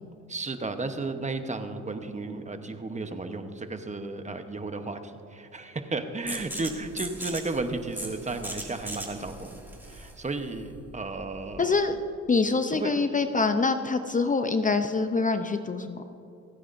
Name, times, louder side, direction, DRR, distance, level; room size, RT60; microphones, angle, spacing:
voice 1, 0.3-9.6 9.9-11.8 12.7-12.9, right 3 dB, 25° right, 7 dB, 1.0 m, -34 dB
sound 1, 6.3-11.8, right 1 dB, 5° right, 2.3 m, -39 dB
voice 2, 11.6-12.0 12.3-16.0, left 4 dB, 25° left, 8 dB, 0.6 m, -25 dB
27.5 x 9.4 x 2.6 m, 2.7 s
cardioid pair, 90°, 30 cm